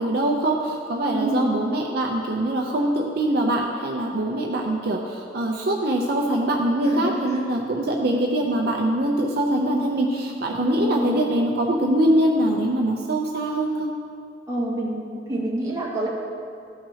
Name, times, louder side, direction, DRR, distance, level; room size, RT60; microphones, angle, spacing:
voice 1, 0.0-13.9, right 1 dB, 65° right, 0 dB, 0.6 m, -23 dB
voice 2, 1.1-1.5 6.8-7.4 10.7-11.2 14.5-16.1, right 1 dB, 20° right, -6 dB, 1.8 m, -27 dB
14.0 x 5.8 x 2.8 m, 2.4 s
head